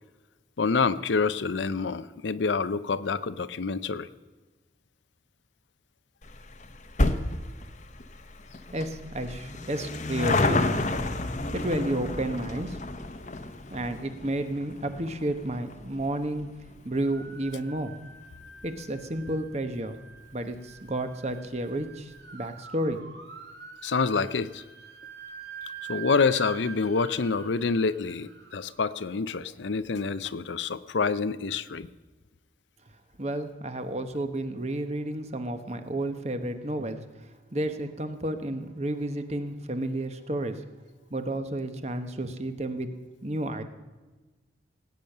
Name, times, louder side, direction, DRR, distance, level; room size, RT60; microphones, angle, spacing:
voice 1, 0.6-4.1 23.8-24.6 25.9-31.9, left 4 dB, 80° left, 14 dB, 0.6 m, -27 dB
sound 1, 6.2-19.0 19.3-19.4 20.2-20.3 20.5-20.6 20.9-21.0, left 2 dB, 40° left, 0.9 m, -31 dB
voice 2, 8.7-10.6 11.5-12.8 13.7-16.5 16.8-18.0 18.6-19.9 20.3-23.0 33.2-40.6 41.1-42.9 43.2-43.6, right 1 dB, 35° right, 8 dB, 1.0 m, -31 dB
sound 2, 17.0-30.1, right 6 dB, 65° right, 2.1 m, -46 dB
18.0 x 9.0 x 6.7 m, 1.2 s
head